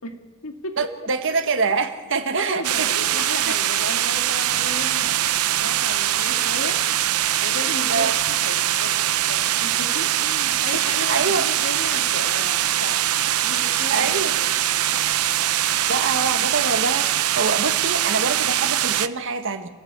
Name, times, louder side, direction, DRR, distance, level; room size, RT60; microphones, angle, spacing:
voice 1, 0.0-1.0 2.4-6.8 7.4-9.0 9.3-13.1 13.4-14.5, left 2 dB, 70° left, 5 dB, 2.1 m, -35 dB
voice 2, 0.8-3.5 7.9-8.2 10.9-11.5 13.9-14.4 15.9-19.7, right 4 dB, 60° right, 7 dB, 1.7 m, -25 dB
sound 1, 2.6-19.1, right 12 dB, 85° right, 0.7 m, -22 dB
28.5 x 16.0 x 8.2 m, 1.4 s
head